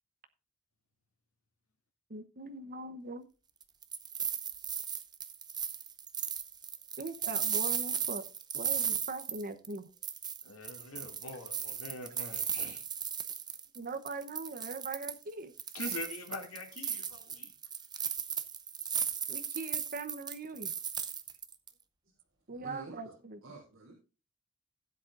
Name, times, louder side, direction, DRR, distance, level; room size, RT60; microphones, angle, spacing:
voice 1, 2.1-3.2 7.0-8.2 8.5-9.9 13.7-15.5 19.3-20.7 22.5-23.4, right 3 dB, 45° right, 0.9 m, -41 dB
sound 1, 3.6-9.8 10.0-13.8 14.1-15.2 15.6-21.7, right 7 dB, 20° right, 0.7 m, -36 dB
voice 2, 10.4-12.8 15.7-17.5, left 2 dB, 75° left, 2.6 m, -43 dB
voice 3, 22.5-23.1 23.4-23.9, right 2 dB, 70° right, 3.4 m, -48 dB
16.5 x 8.0 x 2.5 m
head